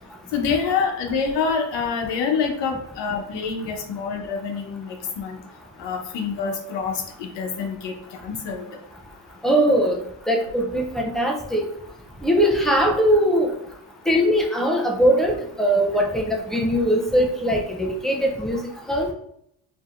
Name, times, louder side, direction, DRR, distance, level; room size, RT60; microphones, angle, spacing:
voice 1, 0.3-5.4 5.8-7.9 8.2-8.7, left 5 dB, 60° left, 4 dB, 0.9 m, -26 dB
voice 2, 9.4-10.0 10.3-11.7 12.2-13.5 14.1-18.6 18.9-19.1, equal, ahead, 0 dB, 0.3 m, -20 dB
4.6 x 2.8 x 2.4 m, 0.73 s
cardioid pair, 145°, 47 cm